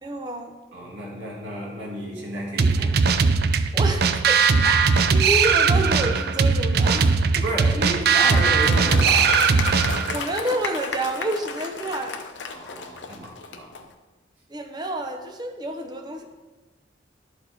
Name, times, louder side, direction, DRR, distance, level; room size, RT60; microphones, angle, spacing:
voice 1, 0.0-0.5 3.7-7.2 10.1-12.2 14.5-16.2, right 1 dB, 25° right, 4 dB, 0.8 m, -29 dB
voice 2, 0.7-3.1 7.4-9.7 10.0-10.2 12.5-13.7, right 1 dB, 80° right, -3 dB, 2.0 m, -32 dB
sound 1, 2.6-10.2, right 5 dB, 55° right, 0.4 m, -19 dB
Applause, 8.3-13.8, left 5 dB, 80° left, 0.7 m, -33 dB
12.0 x 4.7 x 4.2 m, 1.2 s
head